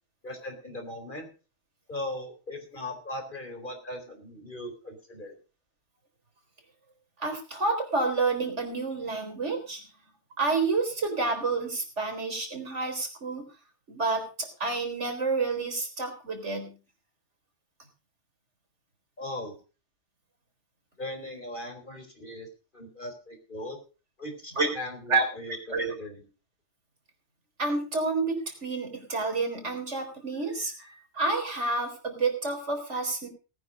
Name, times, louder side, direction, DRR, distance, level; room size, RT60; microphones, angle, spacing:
voice 1, 0.2-1.3 1.9-5.4 19.2-19.6 21.0-22.5 22.7-23.8 24.2-26.3, left 1 dB, 45° left, 5 dB, 4.4 m, -39 dB
voice 2, 7.2-9.9 10.4-13.4 13.9-16.7 24.6-24.7 25.1-25.3 25.7-25.9 27.6-33.3, right 3 dB, 75° right, 5 dB, 4.3 m, -29 dB
18.5 x 9.6 x 5.2 m, 0.34 s
omnidirectional pair, 1.2 m